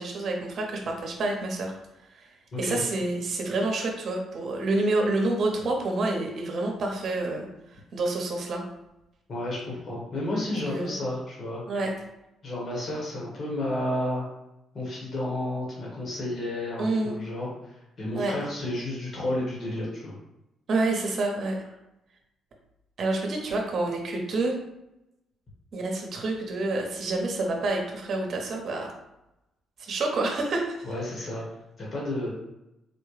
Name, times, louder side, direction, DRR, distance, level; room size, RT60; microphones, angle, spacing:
voice 1, 0.0-1.7 2.2-2.3 2.6-7.5 7.9-8.6 10.7-11.0 11.7-11.9 16.8-17.1 18.1-18.3 20.7-21.7 23.0-24.6 25.7-28.9 29.8-30.8, right 2 dB, 55° right, 1 dB, 0.8 m, -28 dB
voice 2, 2.5-2.8 9.3-11.6 12.4-14.2 14.7-20.2 30.8-31.4 31.8-32.3, left 1 dB, 50° left, -4 dB, 1.4 m, -31 dB
4.2 x 2.2 x 3.2 m, 0.90 s
cardioid pair, 90°, 0 cm